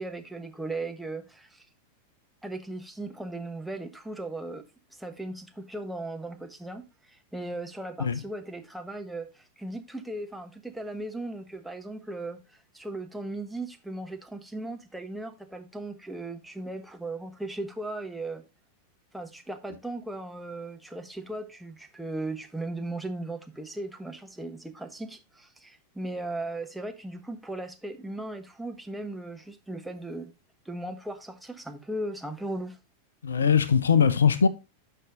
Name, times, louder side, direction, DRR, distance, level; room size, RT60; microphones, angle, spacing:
voice 1, 0.0-1.6 2.4-4.7 5.0-12.4 12.7-18.4 19.1-30.3 30.6-32.8, right 2 dB, 5° right, 1.2 m, -37 dB
voice 2, 33.2-34.5, left 6 dB, 70° left, 0.7 m, -21 dB
12.0 x 5.6 x 2.7 m
figure-of-eight pair, 90°, 0 cm